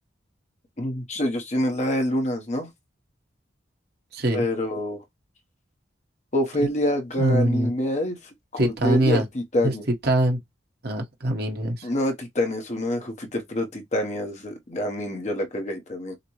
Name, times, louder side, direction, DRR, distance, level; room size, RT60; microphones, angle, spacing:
voice 1, 0.8-2.7 4.3-5.0 6.3-8.2 8.5-9.9 11.8-16.2, left 1 dB, 35° left, 0.9 m, -26 dB
voice 2, 4.1-4.4 7.2-7.7 8.6-9.2 9.6-9.7 10.0-10.4 10.8-11.9, right 1 dB, 55° right, 1.2 m, -23 dB
6.6 x 2.2 x 3.0 m
head